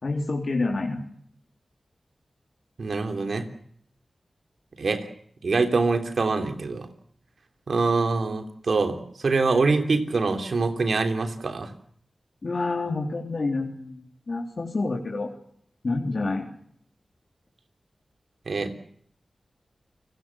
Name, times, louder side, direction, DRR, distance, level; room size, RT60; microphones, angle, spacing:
voice 1, 0.0-1.0 12.4-15.3 15.8-16.5, left 3 dB, 65° left, 0 dB, 3.6 m, -28 dB
voice 2, 2.8-3.5 4.8-5.1 5.4-6.9 7.7-11.7 18.5-18.7, right 3 dB, 75° right, 6 dB, 3.3 m, -24 dB
30.0 x 18.5 x 7.3 m, 0.66 s
cardioid pair, 45°, 0 cm